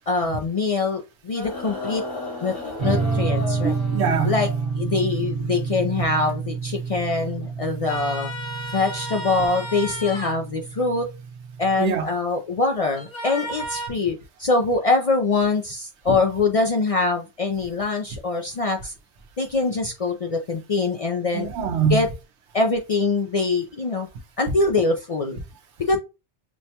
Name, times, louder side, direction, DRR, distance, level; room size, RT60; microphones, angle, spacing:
voice 1, 0.1-2.0 2.4-2.5 2.8-3.8 4.2-4.5 4.7-8.3 8.7-11.1 11.6-18.9 19.4-21.5 21.9-22.1 22.5-24.1 24.4-25.4 25.8-26.0, left 3 dB, 60° left, 0.3 m, -23 dB
sound 1, 1.3-4.8 5.9-6.0, left 2 dB, 80° left, 3.1 m, -34 dB
sound 2, 2.8-11.8, right 5 dB, 45° right, 1.1 m, -29 dB
voice 2, 3.6-4.4 11.8-12.1 21.3-22.1, right 6 dB, 70° right, 1.0 m, -24 dB
sound 3, 7.9-10.4 12.9-13.9, right 1 dB, 30° left, 0.7 m, -33 dB
6.2 x 2.2 x 2.8 m
omnidirectional pair, 1.2 m